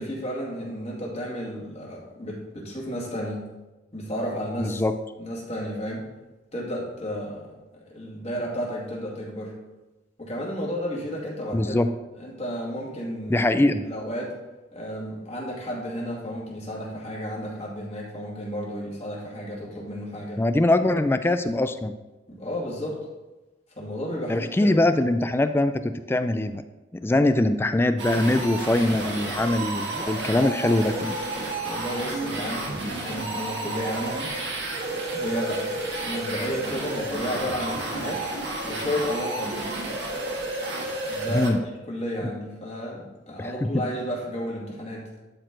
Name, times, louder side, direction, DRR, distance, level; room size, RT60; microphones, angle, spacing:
voice 1, 0.0-3.4 3.9-4.8 5.2-6.1 6.5-9.5 10.2-11.9 12.2-13.4 13.8-14.3 14.7-20.4 22.3-23.0 23.8-24.9 31.6-34.3 35.1-35.6 36.0-38.2 38.6-39.7 41.0-41.6 41.9-45.1, equal, 35° left, -4 dB, 2.4 m, -32 dB
voice 2, 4.6-4.9 11.5-11.9 13.3-13.9 20.4-22.0 24.3-26.6 26.9-31.2 41.3-41.6 43.4-43.8, left 1 dB, 15° left, 10 dB, 0.3 m, -22 dB
sound 1, 28.0-41.5, right 2 dB, 75° right, 1.4 m, -31 dB
12.0 x 4.6 x 3.8 m, 1.1 s
head